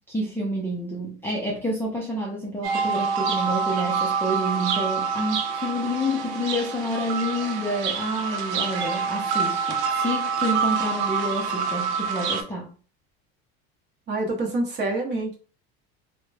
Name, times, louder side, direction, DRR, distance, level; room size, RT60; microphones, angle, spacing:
voice 1, 0.1-12.7, equal, 5° left, 0.4 m, -29 dB
sound 1, 2.6-12.4, right 5 dB, 85° right, 0.6 m, -26 dB
voice 2, 14.1-15.4, right 2 dB, 35° right, 0.8 m, -26 dB
2.9 x 2.1 x 2.2 m
cardioid pair, 145°, 33 cm